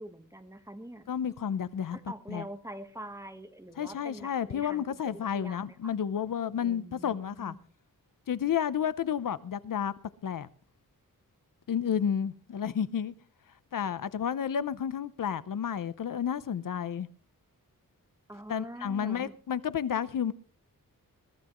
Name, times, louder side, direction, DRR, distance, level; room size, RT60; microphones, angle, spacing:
voice 1, 0.0-1.1 1.9-4.8 5.3-5.9 6.6-7.7 18.3-19.3, right 1 dB, 10° right, 1.3 m, -44 dB
voice 2, 1.1-2.0 2.3-2.4 3.8-7.6 8.3-9.9 10.2-10.5 11.7-13.1 13.7-17.1 18.5-20.3, left 8 dB, 70° left, 0.7 m, -31 dB
21.5 x 13.5 x 3.1 m
wide cardioid pair, 150°, 34 cm